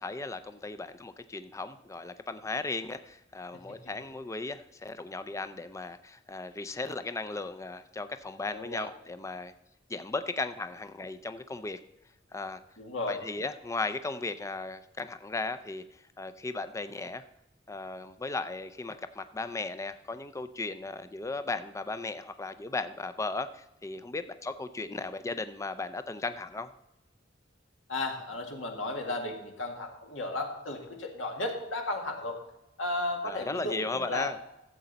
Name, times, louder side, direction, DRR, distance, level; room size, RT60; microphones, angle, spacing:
voice 1, 0.0-9.5 9.9-11.8 12.3-12.6 13.1-17.2 17.7-26.7 33.2-34.4, left 3 dB, 15° left, 11 dB, 0.4 m, -36 dB
voice 2, 8.5-8.9 12.8-13.2 27.9-32.4 32.8-34.3, left 2 dB, 85° left, 1 dB, 1.9 m, -34 dB
14.0 x 7.7 x 4.0 m, 0.91 s
head